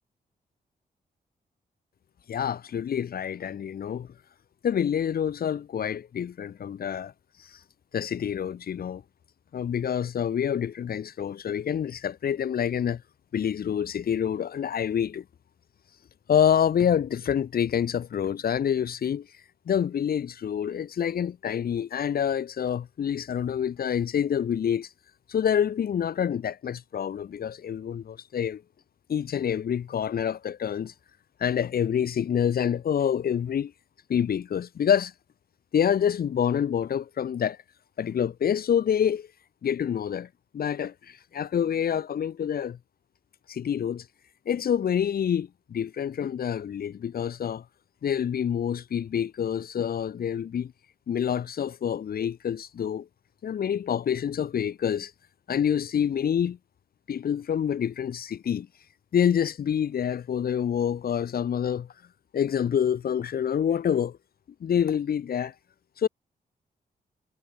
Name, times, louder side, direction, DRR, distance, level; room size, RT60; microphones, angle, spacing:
voice 1, 2.3-4.1 4.6-7.1 7.9-9.0 9.5-13.0 13.3-15.2 16.3-19.3 19.7-24.9 25.3-28.6 29.1-30.9 31.4-33.7 34.1-35.1 35.7-37.6 38.0-39.3 39.6-40.3 40.5-42.8 43.5-44.0 44.5-47.6 48.0-50.7 51.1-53.1 53.4-55.1 55.5-56.6 57.1-58.7 59.1-61.9 62.3-64.2 64.6-65.5 66.0-66.1, left 8 dB, 75° left, 6.2 m, -27 dB
cardioid pair, 100°, 16 cm